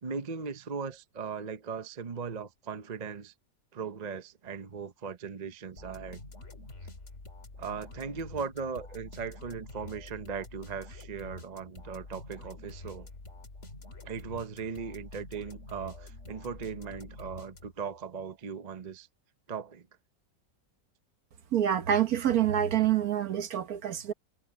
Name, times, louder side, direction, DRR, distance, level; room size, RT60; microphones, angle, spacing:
voice 1, 0.0-3.3 3.7-6.2 7.6-13.1 14.0-19.1 19.5-19.9, right 6 dB, 35° right, 0.7 m, -38 dB
sound 1, 5.8-18.0, left 2 dB, 40° left, 3.2 m, -47 dB
voice 2, 21.5-24.1, right 10 dB, 60° right, 1.4 m, -26 dB
omnidirectional pair, 1.9 m